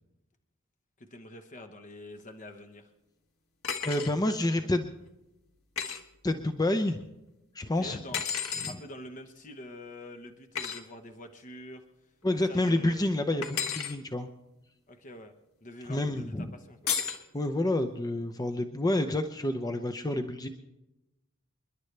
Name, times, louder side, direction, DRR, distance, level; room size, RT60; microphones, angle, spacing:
voice 1, 1.0-2.9 4.5-4.6 7.7-8.3 8.7-11.8 12.5-13.0 14.9-15.3 15.6-17.0, left 1 dB, 40° left, 6 dB, 1.0 m, -46 dB
sound 1, 3.6-4.1 5.8-6.0 8.1-8.8 10.6-10.8 13.4-13.9 16.9-17.2, left 7 dB, 75° left, 1.5 m, -32 dB
voice 2, 3.8-4.9 6.2-7.0 7.5-8.0 8.6-8.7 12.2-14.3 15.9-16.6 17.3-20.5, left 1 dB, 15° left, 6 dB, 0.6 m, -28 dB
28.5 x 11.0 x 3.3 m, 0.96 s
head